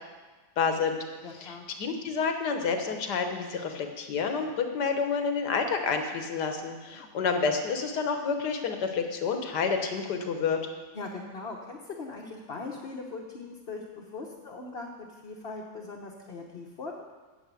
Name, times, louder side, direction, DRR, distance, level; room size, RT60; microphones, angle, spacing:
voice 1, 0.6-1.0 1.4-10.6, left 5 dB, 75° left, 5 dB, 1.7 m, -29 dB
voice 2, 1.2-1.6 6.9-7.0 10.9-17.0, left 3 dB, 40° left, -1 dB, 1.1 m, -40 dB
9.3 x 7.2 x 8.3 m, 1.3 s
omnidirectional pair, 1.8 m